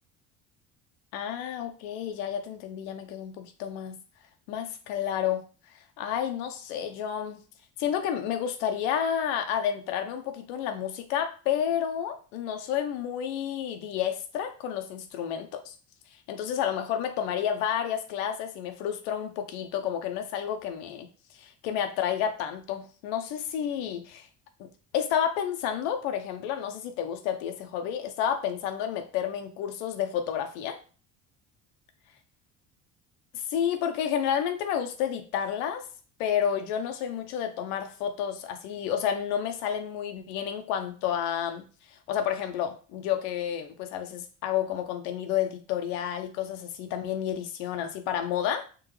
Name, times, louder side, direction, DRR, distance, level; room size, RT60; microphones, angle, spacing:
voice 1, 1.1-4.0 4.5-5.4 6.0-7.4 7.8-15.7 16.3-21.1 21.3-24.3 24.6-24.7 24.9-30.8 33.3-35.8 36.2-41.6 41.9-48.6, left 9 dB, 85° left, 6 dB, 0.6 m, -30 dB
3.7 x 3.0 x 3.1 m, 0.37 s
supercardioid pair, 90°, 31 cm